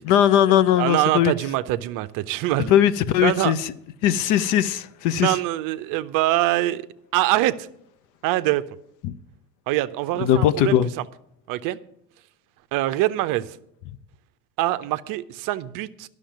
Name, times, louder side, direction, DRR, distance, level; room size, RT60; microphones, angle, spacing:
voice 1, 0.0-1.3 2.7-3.7 4.0-5.3 9.0-9.1 10.2-10.9, left 10 dB, 40° left, 0.7 m, -19 dB
voice 2, 0.8-2.7 3.2-3.6 5.2-6.9 7.1-7.7 8.2-8.6 9.7-10.8 11.5-11.8 12.7-13.6 14.6-16.1, right 15 dB, 45° right, 0.7 m, -24 dB
11.5 x 6.4 x 8.9 m
figure-of-eight pair, 70°, 47 cm